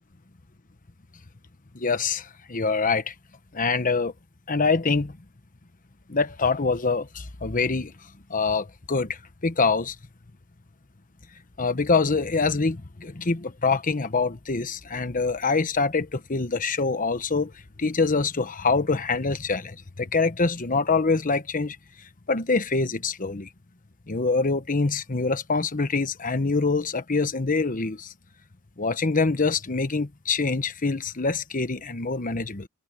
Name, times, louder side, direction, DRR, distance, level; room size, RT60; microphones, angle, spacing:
voice 1, 1.7-3.1 3.5-4.1 4.5-5.2 6.1-9.9 11.6-17.5 17.8-23.5 24.1-28.1 28.8-32.7, left 4 dB, 40° left, 1.1 m, -25 dB
head